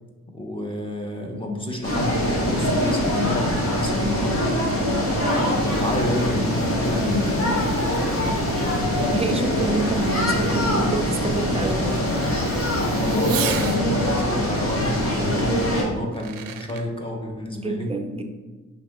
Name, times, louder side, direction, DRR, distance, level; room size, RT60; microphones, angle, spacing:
voice 1, 0.3-4.5 5.6-7.5 12.9-18.0, left 1 dB, 15° left, 1 dB, 0.8 m, -30 dB
sound 1, 1.8-15.8, left 1 dB, 40° left, 1.4 m, -23 dB
voice 2, 1.9-2.3 8.0-8.1 8.8-11.9 17.5-18.2, right 3 dB, 20° right, 5 dB, 0.4 m, -28 dB
sound 2, 2.1-13.6, equal, 80° left, 1.4 m, -40 dB
Fireworks, 5.1-13.8 15.4-15.5 16.0-16.9, right 9 dB, 75° right, 0.5 m, -39 dB
5.6 x 2.7 x 3.6 m, 1.3 s
cardioid pair, 80°, 34 cm